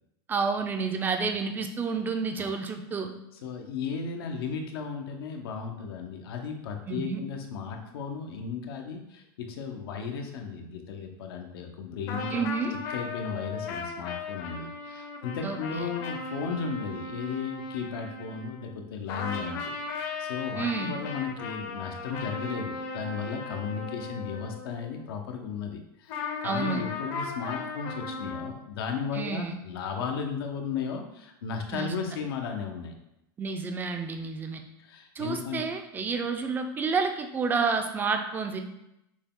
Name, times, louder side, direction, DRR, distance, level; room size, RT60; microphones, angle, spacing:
voice 1, 0.3-3.1 6.9-7.2 12.3-12.8 15.4-16.0 20.6-21.0 26.4-26.8 29.1-29.6 31.7-31.9 33.4-34.6 35.2-38.6, right 5 dB, 15° right, 5 dB, 0.4 m, -30 dB
voice 2, 3.4-12.5 12.9-32.9 34.8-35.6, left 6 dB, 80° left, 3 dB, 0.9 m, -35 dB
sound 1, 12.1-18.8 19.1-25.0 26.1-28.5, left 4 dB, 50° left, 0.8 m, -37 dB
6.3 x 2.3 x 3.7 m, 0.86 s
supercardioid pair, 145°, 12 cm